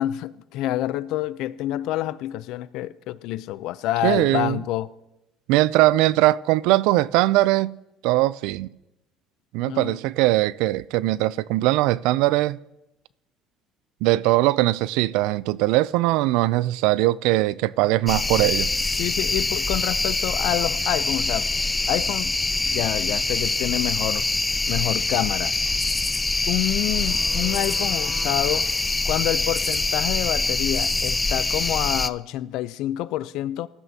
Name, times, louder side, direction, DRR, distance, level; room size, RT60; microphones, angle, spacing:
voice 1, 0.0-4.9 9.6-10.0 18.9-21.5 21.9-22.3 22.6-24.3 24.7-25.5 26.5-28.7 29.0-33.7, left 14 dB, 70° left, 0.5 m, -27 dB
voice 2, 4.0-4.6 5.5-7.7 8.0-8.7 9.5-12.6 14.0-18.7, right 17 dB, 80° right, 0.3 m, -20 dB
sound 1, 18.1-32.1, left 3 dB, 15° left, 0.4 m, -24 dB
19.0 x 12.5 x 2.8 m
supercardioid pair, 105°, 0 cm